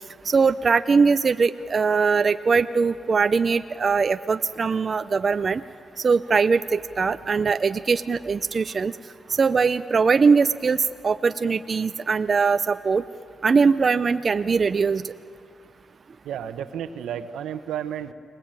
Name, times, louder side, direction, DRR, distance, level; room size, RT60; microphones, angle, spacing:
voice 1, 0.3-5.6 6.0-8.9 9.3-13.0 13.4-15.1, right 5 dB, 50° right, 11 dB, 0.6 m, -21 dB
voice 2, 16.2-18.1, right 9 dB, 85° right, 11 dB, 1.1 m, -32 dB
30.0 x 20.5 x 9.0 m, 2.5 s
cardioid pair, 60°, 0 cm